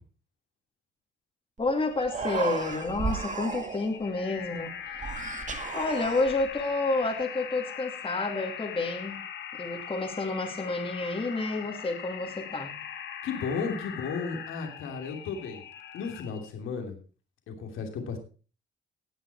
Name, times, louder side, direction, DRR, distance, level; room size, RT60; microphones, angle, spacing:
voice 1, 1.6-5.3 5.7-9.2 9.6-12.8, left 3 dB, 25° left, 0 dB, 2.6 m, -30 dB
Human voice, 1.6-1.7 2.0-4.0 4.9-6.6, right 5 dB, 40° right, 1.6 m, -34 dB
sound 1, 1.9-16.5, left 8 dB, 70° left, 1.7 m, -41 dB
voice 2, 13.2-15.6 15.9-17.0 17.5-18.2, left 5 dB, 85° left, 3 dB, 2.9 m, -34 dB
18.5 x 6.2 x 4.8 m, 0.37 s
cardioid pair, 90°, 20 cm